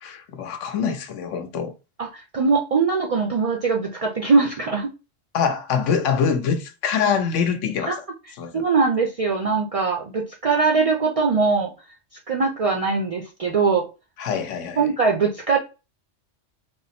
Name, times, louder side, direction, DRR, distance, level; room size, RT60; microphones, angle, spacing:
voice 1, 0.0-1.7 5.3-8.0 8.4-8.6 14.2-14.9, left 6 dB, 90° left, 1.0 m, -24 dB
voice 2, 2.0-4.9 7.8-8.0 8.5-11.7 12.3-13.9 14.8-15.6, right 4 dB, 70° right, 0.3 m, -21 dB
3.5 x 2.0 x 4.0 m
omnidirectional pair, 1.2 m